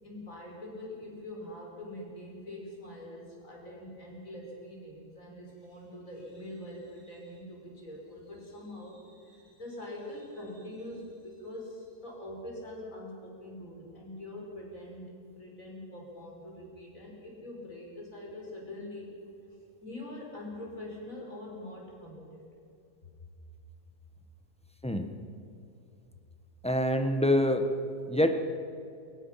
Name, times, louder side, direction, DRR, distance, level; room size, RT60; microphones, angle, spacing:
voice 1, 0.0-19.1 19.8-22.5, left 1 dB, 50° left, -2 dB, 5.9 m, -44 dB
voice 2, 26.6-27.7 28.1-28.3, left 1 dB, 5° left, 6 dB, 1.1 m, -25 dB
23.5 x 21.5 x 5.9 m, 2.5 s
omnidirectional pair, 1.8 m